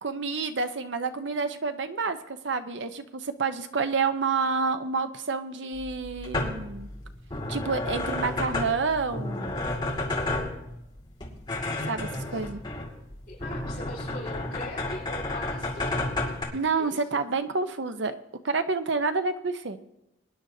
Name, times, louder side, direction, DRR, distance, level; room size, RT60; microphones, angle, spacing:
voice 1, 0.0-6.9 7.5-9.6 11.9-12.6 16.5-18.2 18.4-19.8, right 4 dB, 65° right, 9 dB, 0.8 m, -29 dB
sound 1, 5.7-16.4, left 2 dB, 25° left, 2.2 m, -32 dB
voice 2, 13.3-16.0 16.8-17.3, left 2 dB, 45° left, -11 dB, 5.4 m, -40 dB
23.5 x 10.5 x 2.7 m, 0.87 s
head